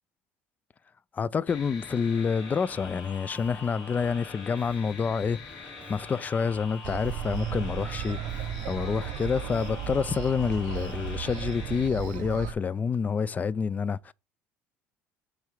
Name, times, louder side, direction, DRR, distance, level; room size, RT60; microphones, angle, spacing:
voice 1, 1.1-8.2 8.6-14.1, left 6 dB, 30° left, 0.3 m, -28 dB
sound 1, 1.5-11.9, left 4 dB, 75° left, 3.2 m, -44 dB
Bass guitar, 2.7-12.6, right 3 dB, 20° right, 0.7 m, -53 dB
sound 2, 6.8-12.5, right 11 dB, 75° right, 0.5 m, -35 dB
6.2 x 3.7 x 4.9 m
supercardioid pair, 90°, 6 cm